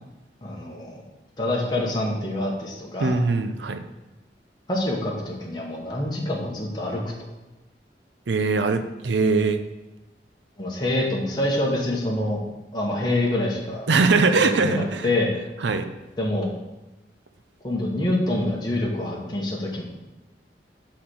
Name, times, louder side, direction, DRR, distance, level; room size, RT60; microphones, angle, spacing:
voice 1, 0.4-1.0 1.4-3.2 4.7-7.1 10.6-12.4 12.7-13.9 14.4-15.3 16.2-16.5 17.6-19.8, left 1 dB, 25° left, -3 dB, 1.1 m, -26 dB
voice 2, 3.0-3.8 8.3-9.6 13.9-15.1 15.6-15.8, right 4 dB, 90° right, 9 dB, 0.6 m, -21 dB
5.8 x 4.3 x 6.3 m, 1.0 s
head